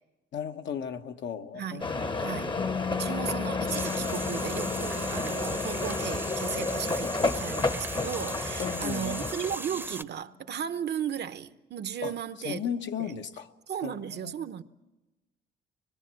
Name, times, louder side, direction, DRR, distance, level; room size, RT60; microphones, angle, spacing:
voice 1, 0.3-2.8 8.6-9.3 12.0-12.1 12.4-13.5 13.8-14.6, left 8 dB, 65° left, 1.1 m, -36 dB
voice 2, 1.5-2.6 2.9-12.6 13.0-13.1 13.7-14.6, right 8 dB, 55° right, 0.9 m, -35 dB
sound 1, 1.8-9.6, left 3 dB, 25° left, 0.9 m, -31 dB
Piano, 2.6-9.9, left 7 dB, 45° left, 0.9 m, -40 dB
sound 2, 3.7-10.0, right 2 dB, 10° right, 0.8 m, -39 dB
25.0 x 20.5 x 7.6 m
cardioid pair, 90°, 20 cm